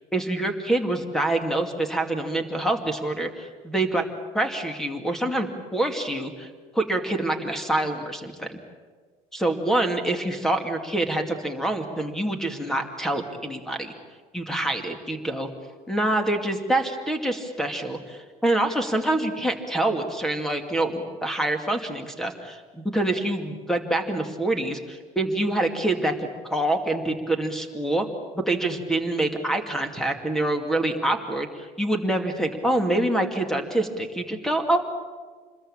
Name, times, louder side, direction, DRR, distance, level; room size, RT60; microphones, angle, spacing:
voice 1, 0.1-4.1 4.3-6.5 6.7-8.6 9.3-13.9 14.3-15.5 15.9-28.0 28.3-34.8, right 1 dB, 5° left, 6 dB, 2.4 m, -26 dB
28.0 x 21.5 x 8.9 m, 1.5 s
cardioid pair, 170°, 13 cm